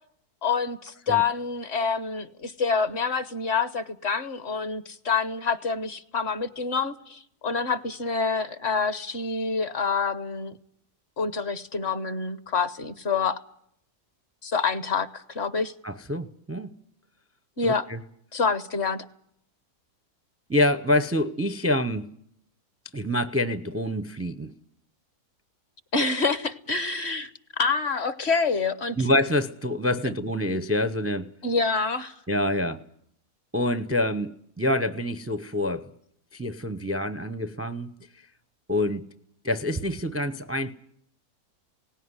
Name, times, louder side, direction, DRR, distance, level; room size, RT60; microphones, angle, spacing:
voice 1, 0.4-10.5 11.2-13.4 14.4-15.7 17.6-17.8 18.3-19.1 25.9-27.3 27.6-29.1 31.4-32.1, left 5 dB, 50° left, 1.3 m, -27 dB
voice 2, 15.8-16.7 17.6-18.0 20.5-22.1 22.9-24.5 29.0-31.3 32.3-32.8 33.5-35.9 36.3-37.9 38.7-39.0 39.4-40.7, left 1 dB, 15° right, 0.4 m, -26 dB
19.0 x 16.5 x 9.7 m
omnidirectional pair, 1.6 m